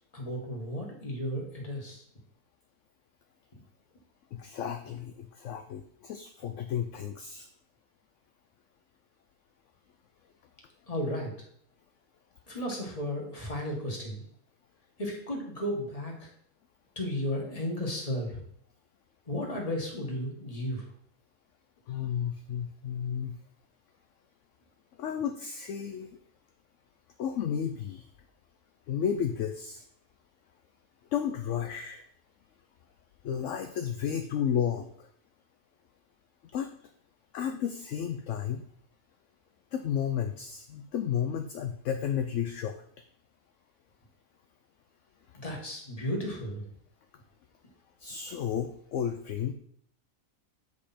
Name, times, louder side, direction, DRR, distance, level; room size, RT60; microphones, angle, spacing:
voice 1, 0.1-2.0 10.9-11.3 12.5-14.2 15.0-16.3 17.0-18.4 19.3-20.8 45.3-46.7, equal, 25° left, -1 dB, 1.9 m, -34 dB
voice 2, 4.3-7.5 21.9-23.4 25.0-26.2 27.2-28.1 28.9-29.8 31.1-32.1 33.2-35.1 36.5-36.7 37.3-38.6 39.7-42.8 48.0-49.5, left 8 dB, 65° left, 7 dB, 0.9 m, -32 dB
8.3 x 5.1 x 4.3 m, 0.64 s
omnidirectional pair, 1.5 m